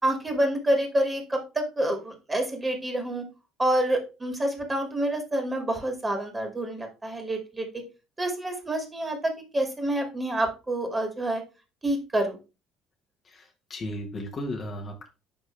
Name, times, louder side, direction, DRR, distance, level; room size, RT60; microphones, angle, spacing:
voice 1, 0.0-3.2 3.6-7.7 8.2-11.4 11.8-12.4, right 1 dB, 20° right, 4 dB, 2.4 m, -27 dB
voice 2, 13.3-15.1, left 1 dB, 35° left, 2 dB, 1.5 m, -35 dB
10.5 x 3.6 x 3.4 m, 0.29 s
figure-of-eight pair, 55°, 0 cm